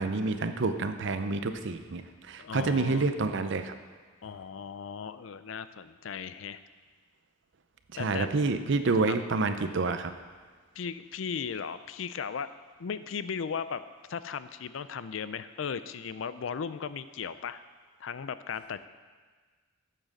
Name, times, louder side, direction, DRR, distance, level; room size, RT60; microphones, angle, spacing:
voice 1, 0.0-3.8 7.9-10.1, right 3 dB, 60° right, 9 dB, 0.7 m, -28 dB
voice 2, 2.4-3.1 4.2-6.6 7.9-8.3 9.1-9.2 10.7-12.5 12.8-13.8 14.1-17.6 18.0-18.9, left 6 dB, 70° left, 13 dB, 0.4 m, -36 dB
8.9 x 7.4 x 6.5 m, 1.5 s
head